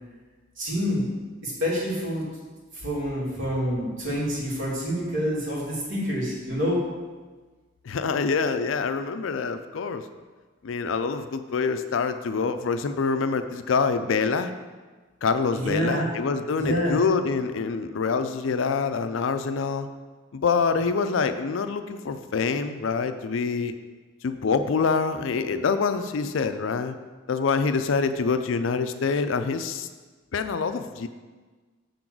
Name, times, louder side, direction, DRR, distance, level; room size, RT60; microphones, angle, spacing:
voice 1, 0.6-1.0 1.4-2.2 2.7-6.8 15.5-16.1 16.6-17.0, equal, 70° right, -5 dB, 2.4 m, -27 dB
voice 2, 7.8-10.1 10.6-14.5 15.2-19.9 20.3-23.8 24.2-26.9 27.3-29.9 30.3-31.1, left 5 dB, 70° left, 10 dB, 0.4 m, -26 dB
6.8 x 3.9 x 6.0 m, 1.3 s
head